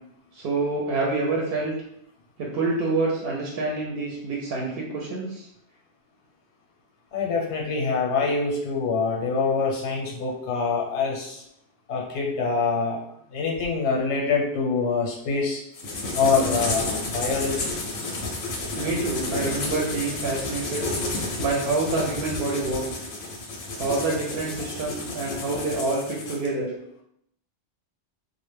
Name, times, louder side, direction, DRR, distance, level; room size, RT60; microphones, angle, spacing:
voice 1, 0.4-1.7 2.4-5.4 18.8-20.9 21.4-22.8 23.8-26.7, right 3 dB, 65° right, -2 dB, 0.7 m, -27 dB
voice 2, 7.1-11.4 11.9-13.0 13.3-15.6 16.1-17.7, left 4 dB, 85° left, -1 dB, 0.9 m, -25 dB
sound 1, 15.7-26.5, left 2 dB, 65° left, 0.7 m, -31 dB
2.1 x 2.1 x 3.1 m, 0.74 s
omnidirectional pair, 1.1 m